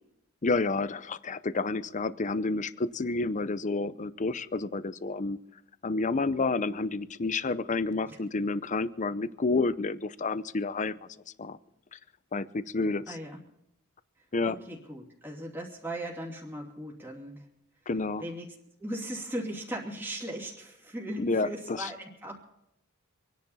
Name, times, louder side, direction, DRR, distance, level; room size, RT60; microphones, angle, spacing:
voice 1, 0.4-5.4 5.8-11.0 11.4-11.6 11.9-12.0 12.3-13.2 14.3-14.6 17.9-18.2 21.2-21.9, left 3 dB, 35° left, 14 dB, 0.7 m, -30 dB
voice 2, 13.1-13.4 14.4-17.4 18.2-18.5 18.8-22.4, right 1 dB, 10° right, -2 dB, 2.6 m, -38 dB
26.5 x 10.5 x 4.2 m, 0.83 s
head